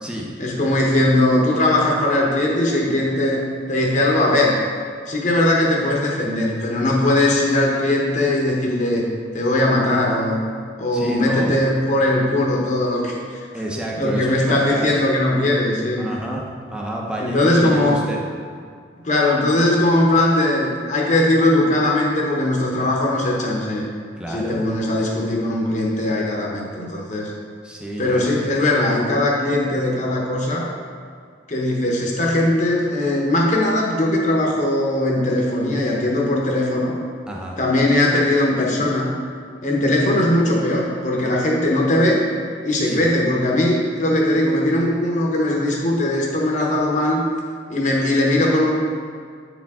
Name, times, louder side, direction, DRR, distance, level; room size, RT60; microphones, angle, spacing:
voice 1, 0.4-4.6 5.1-9.1 9.3-10.4 10.8-13.4 14.0-16.1 17.2-18.0 19.0-23.9 24.3-27.3 28.0-30.7 31.5-36.9 37.6-39.1 39.6-42.2 42.6-47.2 47.7-48.7, left 1 dB, 40° left, -2 dB, 0.9 m, -19 dB
voice 2, 10.9-11.5 13.5-15.0 16.0-18.2 24.2-24.5 27.6-28.3 37.3-37.6 42.8-43.0, right 1 dB, 5° right, -2 dB, 0.7 m, -29 dB
8.5 x 4.8 x 3.6 m, 2.1 s
head